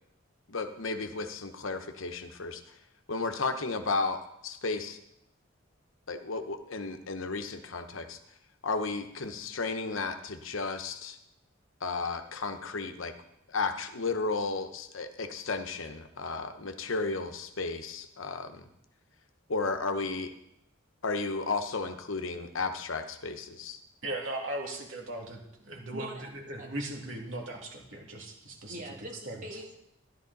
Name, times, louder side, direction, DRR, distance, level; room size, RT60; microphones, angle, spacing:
voice 1, 0.5-2.7 3.1-5.0 6.1-8.2 8.6-11.2 11.8-13.1 13.5-18.6 19.5-20.3 21.0-23.8, left 3 dB, 80° left, 8 dB, 1.0 m, -33 dB
voice 2, 24.0-28.8 29.3-29.6, right 1 dB, 75° right, 0 dB, 2.5 m, -38 dB
voice 3, 25.9-26.3 26.6-26.7 28.7-29.7, right 1 dB, 40° right, 0 dB, 2.0 m, -42 dB
13.0 x 11.0 x 4.0 m, 0.81 s
head